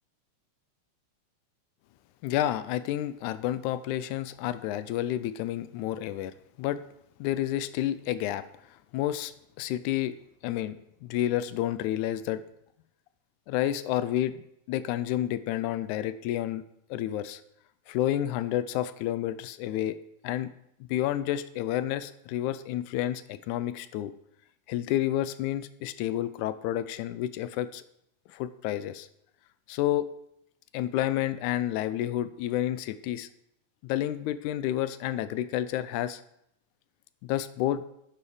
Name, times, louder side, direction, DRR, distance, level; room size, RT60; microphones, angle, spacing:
voice 1, 2.2-6.8 7.2-8.4 8.9-9.3 9.6-10.1 10.4-12.4 13.5-16.6 16.9-17.4 17.9-20.0 20.2-20.5 20.9-24.1 24.7-27.8 28.3-29.1 29.7-30.1 30.7-33.3 33.8-36.2 37.2-37.8, left 13 dB, 85° left, 13 dB, 2.0 m, -30 dB
10.5 x 7.0 x 4.9 m, 0.77 s
omnidirectional pair, 3.4 m